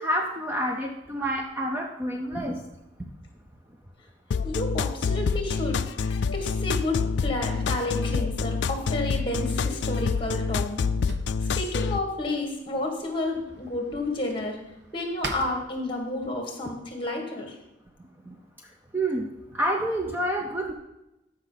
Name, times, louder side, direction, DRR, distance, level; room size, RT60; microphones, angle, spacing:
voice 1, 0.0-2.6 18.3-18.4 18.9-19.2 19.5-20.7, right 1 dB, 10° right, 1 dB, 0.6 m, -28 dB
sound 1, 4.3-12.0, left 5 dB, 65° left, 0.4 m, -27 dB
voice 2, 4.4-10.8 11.4-14.6 14.9-17.6, left 2 dB, 25° left, 2 dB, 1.8 m, -31 dB
Drawer open or close, 7.8-16.3, right 2 dB, 60° right, 1.0 m, -45 dB
14.0 x 5.4 x 4.0 m, 0.93 s
head